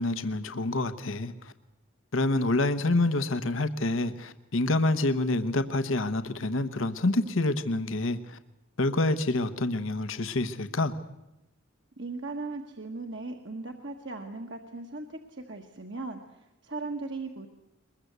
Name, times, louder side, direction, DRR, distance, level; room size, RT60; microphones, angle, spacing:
voice 1, 0.0-1.5 2.1-8.4 8.8-10.9, left 2 dB, 80° left, 11 dB, 1.1 m, -27 dB
voice 2, 12.0-17.5, right 3 dB, 60° right, 4 dB, 1.5 m, -38 dB
23.0 x 21.5 x 8.1 m, 0.93 s
head